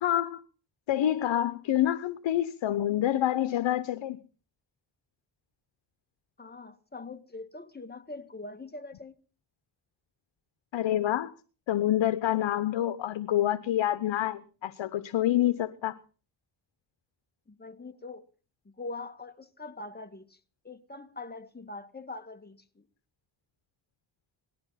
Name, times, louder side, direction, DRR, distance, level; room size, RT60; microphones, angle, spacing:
voice 1, 0.0-0.4 0.9-4.2 10.7-11.3 11.7-16.0, left 12 dB, 85° left, 1.0 m, -27 dB
voice 2, 6.4-9.1 17.5-18.2 18.8-20.4 20.6-22.9, left 3 dB, 20° left, 1.8 m, -43 dB
19.0 x 13.0 x 5.7 m
cardioid pair, 75°, 44 cm